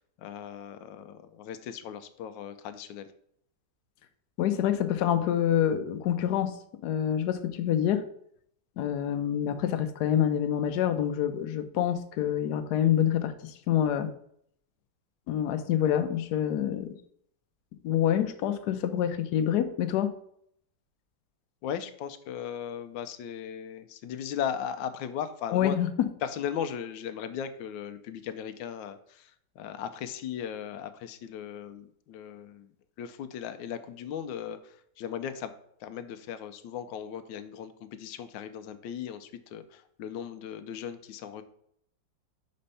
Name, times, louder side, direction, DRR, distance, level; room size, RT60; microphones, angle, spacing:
voice 1, 0.0-3.1 21.6-25.8 26.2-32.7 33.0-35.5 35.8-41.4, left 8 dB, 90° left, 10 dB, 1.3 m, -37 dB
voice 2, 4.4-6.5 6.8-8.0 8.8-14.1 15.3-16.9 17.8-20.1 25.5-25.9, left 10 dB, 70° left, 10 dB, 1.1 m, -27 dB
5.2 x 4.3 x 5.5 m, 0.68 s
omnidirectional pair, 2.0 m